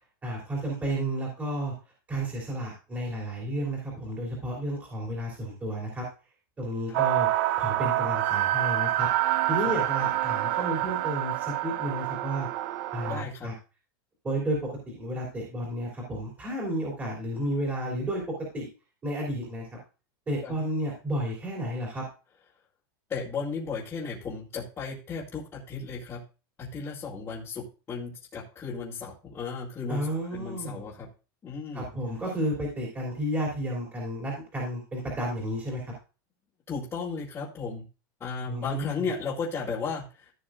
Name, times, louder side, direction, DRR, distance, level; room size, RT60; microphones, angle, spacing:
voice 1, 0.2-1.7 2.1-6.0 6.6-7.3 7.6-9.1 9.5-12.5 12.9-13.5 14.2-14.6 14.9-18.2 18.5-18.7 19.0-19.7 20.3-22.0 29.9-30.9 31.7-35.9 38.5-39.0, right 1 dB, 15° right, -3 dB, 3.2 m, -32 dB
sound 1, 6.9-13.2, right 14 dB, 55° right, 0.7 m, -27 dB
voice 2, 13.0-13.5 20.4-20.6 23.1-26.2 26.6-31.1 31.4-31.9 36.7-37.8 38.2-40.3, left 5 dB, 20° left, -8 dB, 2.1 m, -35 dB
15.0 x 6.2 x 2.5 m, 0.32 s
supercardioid pair, 155°, 12 cm